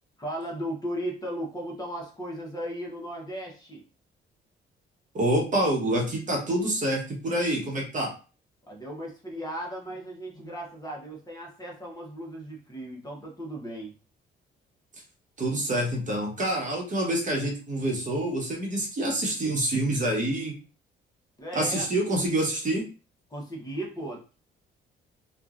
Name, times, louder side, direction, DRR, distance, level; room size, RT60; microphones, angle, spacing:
voice 1, 0.2-3.8 8.7-13.9 21.4-21.9 23.3-24.2, right 1 dB, 20° left, -1 dB, 1.1 m, -36 dB
voice 2, 5.1-8.1 15.4-20.6 21.5-22.8, right 1 dB, 40° right, -1 dB, 1.1 m, -27 dB
3.0 x 2.4 x 2.5 m, 0.34 s
cardioid pair, 90°, 20 cm